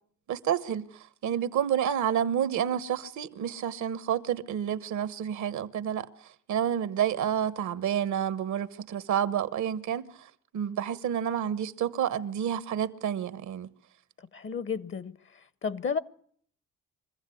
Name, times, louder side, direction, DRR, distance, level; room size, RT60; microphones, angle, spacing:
voice 1, 0.3-0.9 1.2-6.1 6.5-10.1 10.5-13.7, right 9 dB, 75° right, 1.2 m, -29 dB
voice 2, 14.3-15.2 15.6-16.0, left 6 dB, 40° left, 0.8 m, -31 dB
24.0 x 15.0 x 8.5 m
cardioid pair, 90°, 30 cm